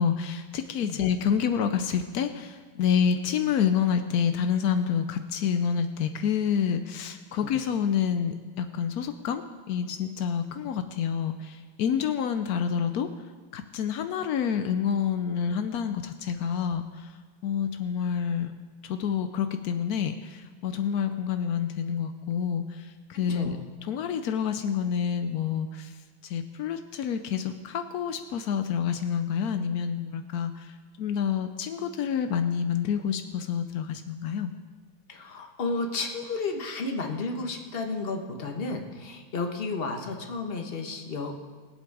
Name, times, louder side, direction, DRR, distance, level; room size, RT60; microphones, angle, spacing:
voice 1, 0.0-13.1 13.5-17.2 17.4-18.5 18.8-23.6 23.9-26.0 26.2-34.5, left 7 dB, 90° left, 8 dB, 0.8 m, -28 dB
voice 2, 23.3-23.6 35.1-41.3, left 3 dB, 35° left, 3 dB, 1.1 m, -32 dB
20.5 x 8.0 x 4.7 m, 1.4 s
omnidirectional pair, 2.3 m